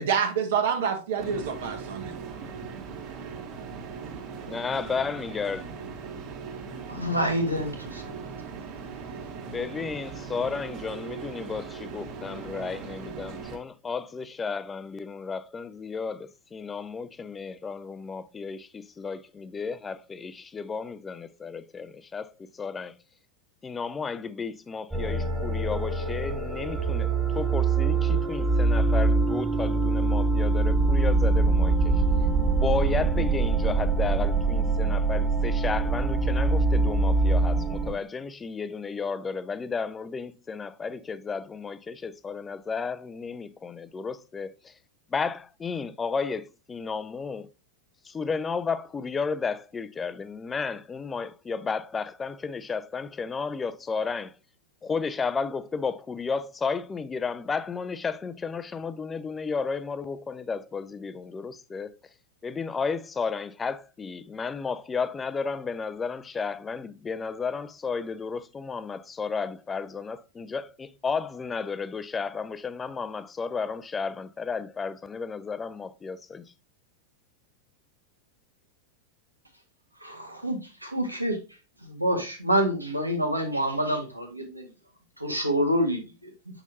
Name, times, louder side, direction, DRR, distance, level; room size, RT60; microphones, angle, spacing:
voice 1, 0.0-2.1, right 7 dB, 55° right, 1.4 m, -27 dB
sound 1, 1.2-13.6, right 5 dB, 40° right, 1.6 m, -39 dB
voice 2, 4.5-5.6 9.5-23.0 23.6-32.0 32.5-44.7 45.1-47.5 48.0-54.4 54.8-62.0 62.4-76.5, left 5 dB, 15° left, 0.4 m, -33 dB
voice 3, 6.9-8.1 80.0-81.4 81.8-84.7 85.2-86.3, equal, 85° right, 1.7 m, -27 dB
sound 2, 24.9-37.9, right 3 dB, 5° right, 2.0 m, -24 dB
6.8 x 6.2 x 2.8 m
figure-of-eight pair, 90°, 0 cm